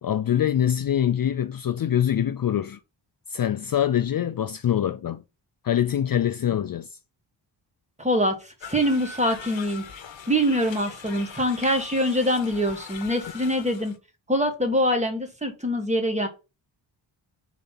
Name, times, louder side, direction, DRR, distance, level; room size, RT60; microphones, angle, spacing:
voice 1, 0.0-2.8 3.3-5.2 5.6-6.9, left 10 dB, 50° left, 0.5 m, -24 dB
voice 2, 8.0-9.8 10.3-13.9 14.3-16.3, equal, 15° right, 1.8 m, -24 dB
sound 1, 8.6-14.0, left 6 dB, 70° left, 1.2 m, -41 dB
5.4 x 4.1 x 5.6 m
wide cardioid pair, 100°, 46 cm